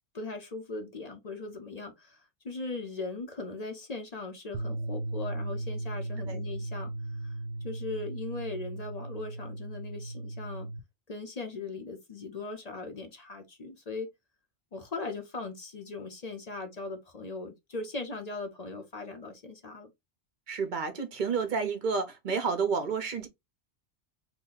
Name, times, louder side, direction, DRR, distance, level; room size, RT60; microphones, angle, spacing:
voice 1, 0.1-6.9 7.2-7.3 7.6-10.7 11.1-14.1 14.7-19.9, left 3 dB, 40° left, 0.8 m, -39 dB
sound 1, 4.5-10.8, right 2 dB, 85° right, 0.9 m, -37 dB
voice 2, 20.5-23.3, right 5 dB, 45° right, 0.8 m, -30 dB
3.0 x 2.6 x 3.8 m
omnidirectional pair, 1.2 m